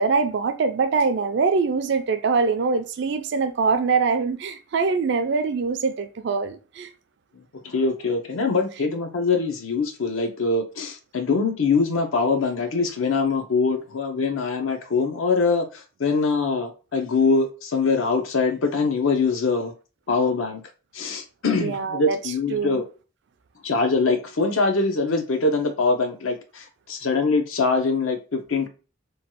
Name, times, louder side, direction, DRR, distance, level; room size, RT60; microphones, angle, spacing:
voice 1, 0.0-6.9 21.6-22.2 22.5-22.8, right 4 dB, 55° right, 0.3 m, -23 dB
voice 2, 7.5-19.7 20.1-20.6 20.9-22.8 23.6-28.7, left 4 dB, 75° left, 0.6 m, -23 dB
3.0 x 2.3 x 2.9 m
head